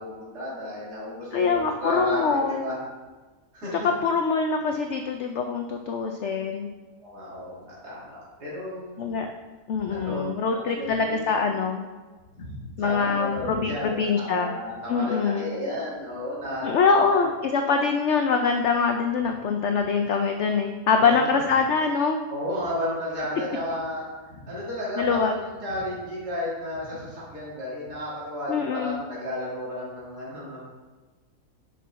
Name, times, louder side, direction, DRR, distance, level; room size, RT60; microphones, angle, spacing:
voice 1, 0.0-2.7 3.5-3.9 7.0-9.1 9.9-11.4 12.3-17.2 20.9-21.4 22.3-30.6, left 1 dB, 75° right, -8 dB, 3.2 m, -33 dB
voice 2, 1.3-2.7 4.0-6.7 9.0-9.3 9.7-11.8 12.8-14.5 14.9-15.5 16.6-22.2 25.0-25.3 28.5-29.0, left 5 dB, 80° left, 4 dB, 0.6 m, -24 dB
6.2 x 5.9 x 4.0 m, 1.3 s
omnidirectional pair, 1.7 m